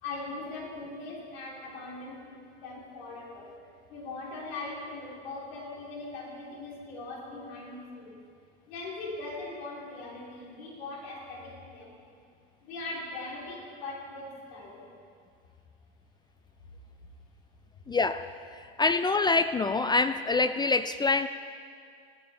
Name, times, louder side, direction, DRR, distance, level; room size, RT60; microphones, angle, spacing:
voice 1, 0.0-3.6 3.9-8.2 8.7-12.1 12.6-14.9, left 2 dB, 75° left, -3 dB, 3.3 m, -40 dB
voice 2, 17.9-18.3 18.8-21.3, left 3 dB, 15° left, 11 dB, 0.3 m, -25 dB
18.0 x 11.0 x 4.1 m, 2.2 s
hypercardioid pair, 85°, 31 cm